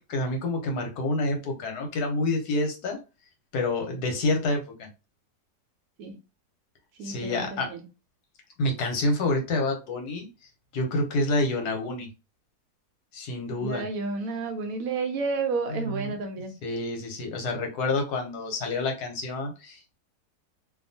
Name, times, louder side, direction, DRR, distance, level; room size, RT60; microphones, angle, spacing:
voice 1, 0.1-3.0 3.5-4.9 7.0-7.7 8.6-10.3 10.7-12.1 13.1-13.8 15.7-16.1 16.6-20.0, left 2 dB, 80° left, 1.3 m, -28 dB
voice 2, 7.0-7.9 13.6-16.5, right 4 dB, 70° right, 0.9 m, -31 dB
2.8 x 2.4 x 2.6 m
omnidirectional pair, 1.7 m